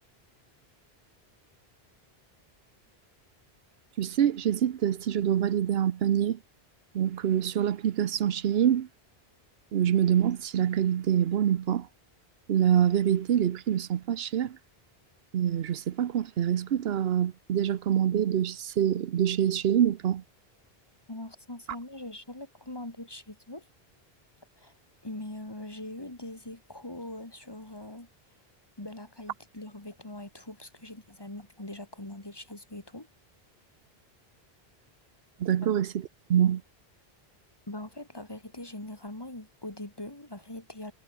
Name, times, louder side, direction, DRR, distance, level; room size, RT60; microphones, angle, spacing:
voice 1, 4.0-6.4 6.9-8.9 9.7-11.9 12.5-14.6 15.3-20.2 35.4-35.9 36.3-36.6, right 10 dB, 75° right, 1.0 m, -25 dB
voice 2, 21.1-23.6 24.6-24.7 25.0-28.1 28.8-33.1 37.7-40.9, left 1 dB, 25° left, 2.3 m, -42 dB
omnidirectional pair, 1.0 m